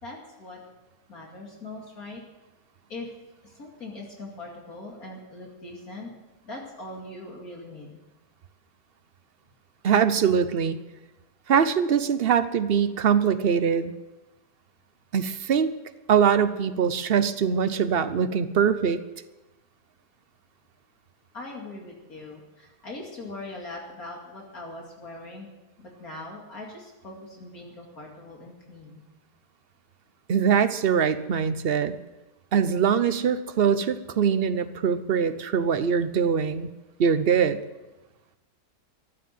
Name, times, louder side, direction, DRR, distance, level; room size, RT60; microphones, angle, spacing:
voice 1, 0.0-0.6 1.1-2.2 2.9-3.1 3.4-6.1 6.4-8.0 21.3-25.5 25.8-29.0, left 2 dB, 55° left, -1 dB, 2.8 m, -41 dB
voice 2, 9.8-10.8 11.5-13.9 15.1-15.7 16.1-19.0 30.3-32.0 32.5-36.7 37.0-37.6, right 7 dB, 55° right, 12 dB, 0.6 m, -22 dB
15.0 x 11.0 x 7.7 m, 1.1 s
omnidirectional pair, 1.8 m